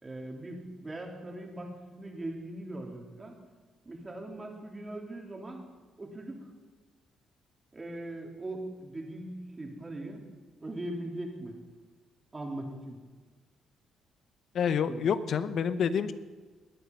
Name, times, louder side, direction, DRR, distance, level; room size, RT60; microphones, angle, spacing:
voice 1, 0.0-3.4 3.8-5.6 6.0-6.5 7.7-10.2 10.6-11.6 12.3-13.0 14.8-15.0, right 1 dB, 25° right, 1 dB, 3.2 m, -40 dB
voice 2, 14.5-16.1, left 7 dB, 65° left, 13 dB, 0.8 m, -28 dB
20.0 x 9.3 x 5.4 m, 1.3 s
cardioid pair, 90°, 0 cm